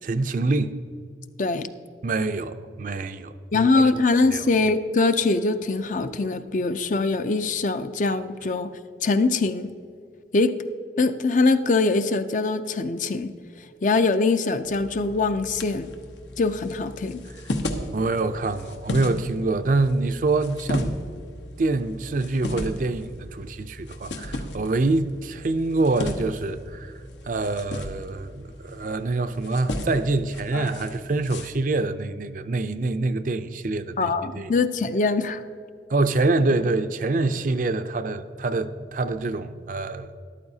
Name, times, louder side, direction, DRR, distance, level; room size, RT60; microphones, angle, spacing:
voice 1, 0.0-0.8 2.0-3.9 4.3-4.4 17.9-20.9 21.6-26.9 27.2-34.5 35.9-40.2, right 3 dB, 45° right, 0.4 m, -25 dB
voice 2, 3.5-8.7 9.0-9.7 10.3-10.5 11.0-13.3 13.8-15.9 16.4-17.2 34.0-35.4, left 3 dB, 45° left, 0.5 m, -22 dB
sound 1, 14.6-31.5, left 1 dB, 85° left, 1.0 m, -35 dB
13.5 x 11.5 x 2.8 m
head